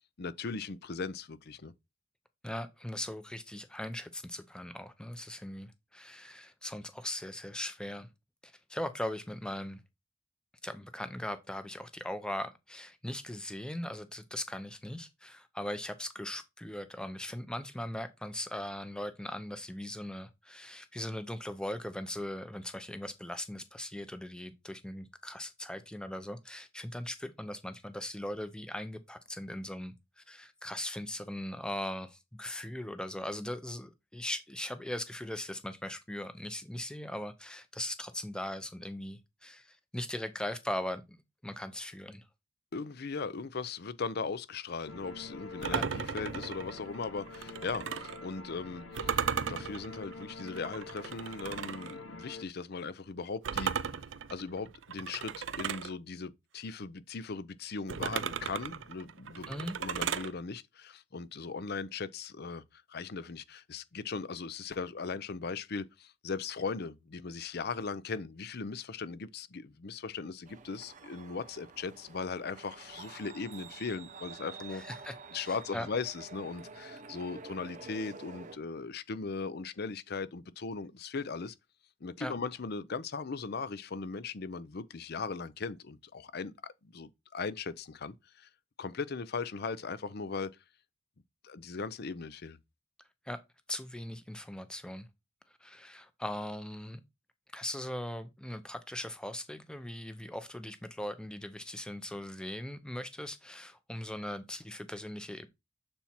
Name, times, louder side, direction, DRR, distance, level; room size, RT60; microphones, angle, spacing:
voice 1, 0.2-1.7 42.7-53.7 54.3-59.5 59.8-62.6 62.9-74.8 75.3-81.5 82.0-88.5 88.8-90.5 91.4-92.6, left 4 dB, 55° left, 0.6 m, -38 dB
voice 2, 2.4-8.1 8.4-9.8 10.6-42.2 45.7-45.9 59.5-59.8 74.7-75.1 75.4-75.9 82.2-82.3 93.3-93.4 93.7-95.1 95.6-97.0 97.5-105.5, left 1 dB, 5° left, 0.7 m, -39 dB
sound 1, 44.9-52.4, left 3 dB, 80° left, 1.0 m, -46 dB
sound 2, 45.6-48.2 48.9-51.9 53.4-55.9 57.9-60.3, right 7 dB, 75° right, 0.5 m, -36 dB
sound 3, 70.4-78.6, right 4 dB, 40° right, 0.7 m, -49 dB
7.1 x 4.4 x 4.3 m
head